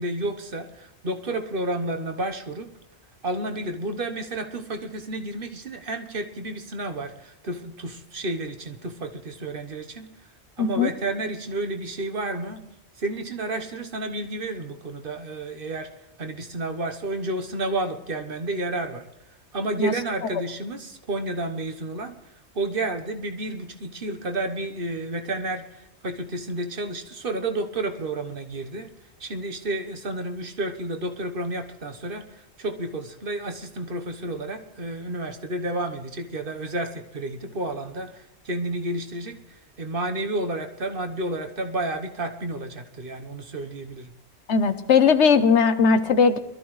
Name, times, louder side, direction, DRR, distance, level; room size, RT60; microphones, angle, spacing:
voice 1, 0.0-2.7 3.2-10.1 10.6-12.6 13.0-15.9 16.2-19.1 19.5-22.1 22.5-28.9 29.2-39.4 39.8-44.1, right 2 dB, 55° right, 6 dB, 1.3 m, -31 dB
voice 2, 10.6-10.9 19.8-19.9 44.5-46.4, left 5 dB, 85° left, 10 dB, 1.2 m, -18 dB
22.0 x 13.0 x 3.2 m, 0.92 s
omnidirectional pair, 1.1 m